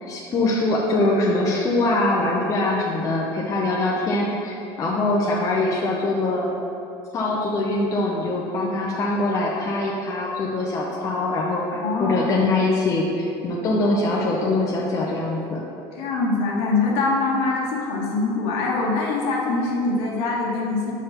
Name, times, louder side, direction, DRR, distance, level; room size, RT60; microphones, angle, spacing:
voice 1, 0.0-6.5 7.1-15.6, left 2 dB, 30° left, -3 dB, 0.6 m, -23 dB
voice 2, 11.8-12.3 16.0-20.9, left 3 dB, 60° left, -4 dB, 1.4 m, -23 dB
6.4 x 3.4 x 5.6 m, 2.7 s
cardioid pair, 150°, 11 cm